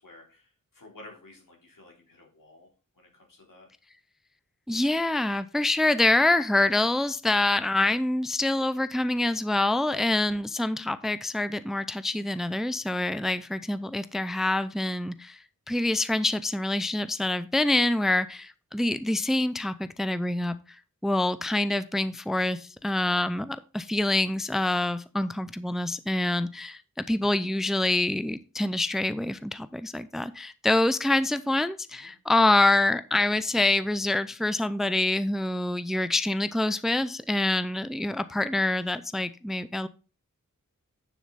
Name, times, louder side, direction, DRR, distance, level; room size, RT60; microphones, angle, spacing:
voice 1, 0.0-2.7 2.9-3.7 32.0-32.1, left 2 dB, 85° left, -1 dB, 3.9 m, -52 dB
voice 2, 4.7-15.4 15.7-20.5 21.0-39.9, left 2 dB, ahead, 13 dB, 0.5 m, -26 dB
9.5 x 7.1 x 4.1 m, 0.33 s
wide cardioid pair, 75°, 32 cm